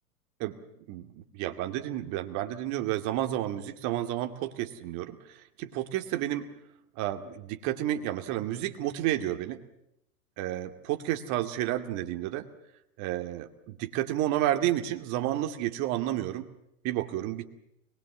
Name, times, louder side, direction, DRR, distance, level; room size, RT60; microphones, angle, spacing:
voice 1, 0.9-6.5 7.0-9.6 10.4-12.4 13.0-16.5 16.8-17.4, right 13 dB, 40° right, 6 dB, 2.3 m, -31 dB
25.5 x 20.5 x 7.3 m, 0.80 s
hypercardioid pair, 120°, 43 cm